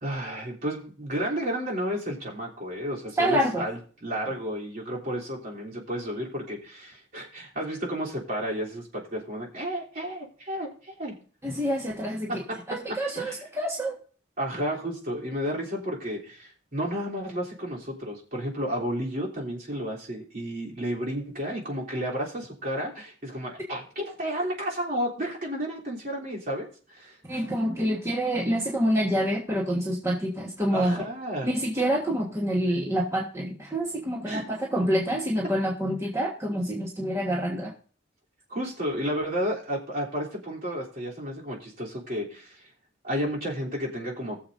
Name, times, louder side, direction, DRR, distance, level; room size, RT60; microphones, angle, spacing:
voice 1, 0.0-11.1 12.3-13.4 14.4-27.2 30.7-31.5 34.3-34.4 38.5-42.6 43.0-44.4, equal, 50° right, -3 dB, 3.3 m, -32 dB
voice 2, 3.2-3.7 11.4-14.0 27.3-31.0 31.4-37.7, equal, 15° right, -2 dB, 1.4 m, -27 dB
20.5 x 7.0 x 2.7 m, 0.41 s
head